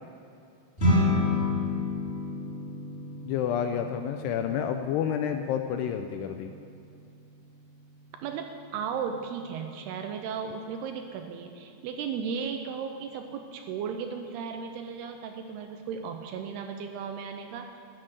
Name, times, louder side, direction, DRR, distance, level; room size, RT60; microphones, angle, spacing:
sound 1, 0.8-10.3, left 2 dB, 15° left, 2.7 m, -32 dB
voice 1, 0.9-1.5 8.2-17.7, right 6 dB, 80° right, 5 dB, 2.5 m, -35 dB
voice 2, 3.2-6.5, left 9 dB, 80° left, 7 dB, 2.4 m, -29 dB
13.0 x 7.8 x 8.1 m, 2.6 s
omnidirectional pair, 5.1 m